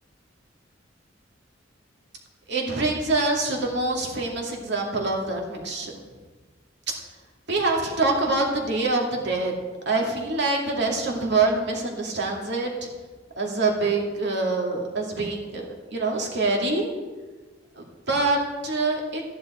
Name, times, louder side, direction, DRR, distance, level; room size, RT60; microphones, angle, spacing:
voice 1, 2.5-5.9 6.9-7.0 7.5-9.5 9.9-12.9 13.4-16.9 17.8-19.2, right 3 dB, 65° right, 0 dB, 2.3 m, -25 dB
13.5 x 10.0 x 4.4 m, 1.3 s
head